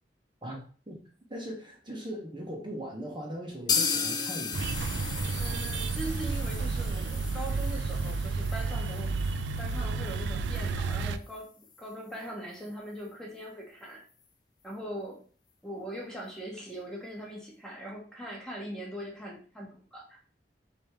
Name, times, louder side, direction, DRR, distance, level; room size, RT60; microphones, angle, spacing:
voice 1, 1.3-4.6, equal, 25° right, -1 dB, 1.0 m, -39 dB
sound 1, 3.7-11.4 11.7-11.8 12.1-12.2 12.6-12.7, left 5 dB, 25° left, 0.5 m, -36 dB
sound 2, 4.5-11.2, right 4 dB, 75° right, 0.3 m, -31 dB
voice 2, 5.4-9.1 9.6-14.0 14.6-15.2 15.6-20.2, right 1 dB, 5° left, -2 dB, 1.1 m, -41 dB
3.5 x 3.4 x 4.5 m, 0.41 s
head